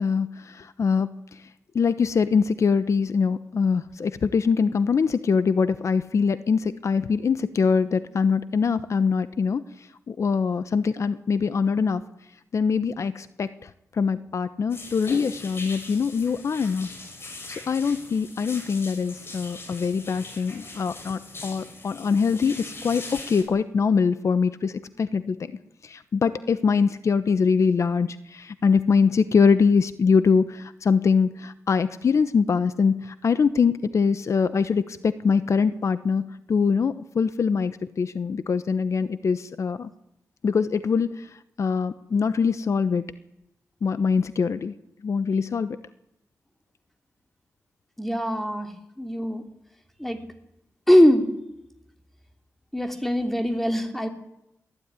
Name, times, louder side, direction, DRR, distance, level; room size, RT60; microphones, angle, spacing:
voice 1, 0.0-1.4 1.7-12.0 12.5-16.9 17.5-25.5 25.8-39.9 40.4-43.0 43.8-44.7 45.0-45.8, left 5 dB, 60° left, 13 dB, 1.0 m, -23 dB
sound 1, 14.7-23.4, left 2 dB, 45° left, 6.9 m, -41 dB
voice 2, 48.0-49.4 50.0-50.2 50.9-51.3 52.7-54.1, equal, 5° left, 6 dB, 3.0 m, -21 dB
22.5 x 15.0 x 9.8 m, 0.84 s
wide cardioid pair, 105°, 6 cm